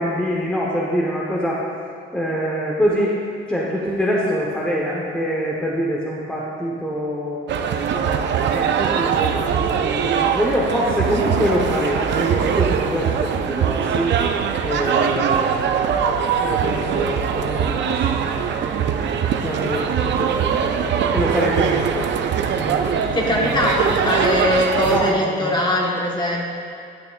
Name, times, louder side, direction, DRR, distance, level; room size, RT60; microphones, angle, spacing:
voice 1, 0.0-1.6 2.1-3.2 3.5-7.4 7.9-14.1 14.6-15.7 16.4-18.5 19.4-20.7 21.1-22.1 22.5-23.6 23.9-24.3 24.9-25.6, equal, 5° left, -5 dB, 1.0 m, -25 dB
sound 1, 7.5-25.1, right 7 dB, 65° right, 0.5 m, -22 dB
voice 2, 23.1-26.5, left 1 dB, 20° left, -2 dB, 1.3 m, -21 dB
11.5 x 5.9 x 2.5 m, 2.6 s
cardioid pair, 90°, 20 cm